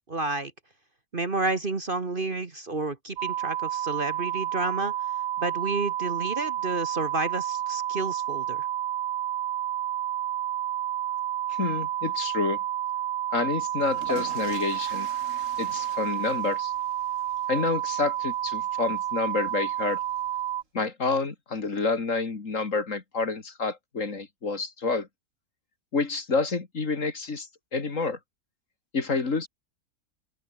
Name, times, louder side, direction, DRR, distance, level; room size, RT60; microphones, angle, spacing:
voice 1, 0.1-0.5 1.1-4.9 5.4-8.7, right 2 dB, 35° right, 1.6 m, -30 dB
sound 1, 3.2-20.6, right 12 dB, 70° right, 1.1 m, -30 dB
voice 2, 11.5-12.6 13.3-15.1 15.6-16.7 17.5-20.0 20.7-25.1 25.9-28.2 28.9-29.5, left 4 dB, 50° left, 2.7 m, -28 dB
sound 2, 13.7-20.5, right 3 dB, 50° right, 3.9 m, -45 dB
open air
omnidirectional pair, 1.7 m